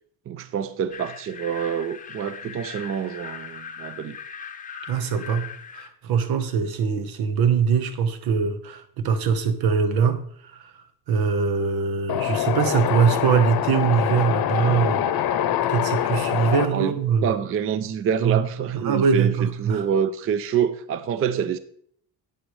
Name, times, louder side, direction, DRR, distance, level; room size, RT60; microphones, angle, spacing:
voice 1, 0.3-4.2 16.7-17.0 17.2-21.6, right 8 dB, 40° right, 0.4 m, -26 dB
sound 1, 0.9-5.9, left 7 dB, 20° left, 0.7 m, -39 dB
voice 2, 4.9-10.2 10.5-10.7 11.1-15.3 15.7-17.3 18.2-18.4 18.8-19.8, right 6 dB, 90° right, 1.1 m, -22 dB
Wind, 12.1-16.7, left 10 dB, 75° left, 0.8 m, -24 dB
11.0 x 8.8 x 3.2 m
cardioid pair, 165°, 36 cm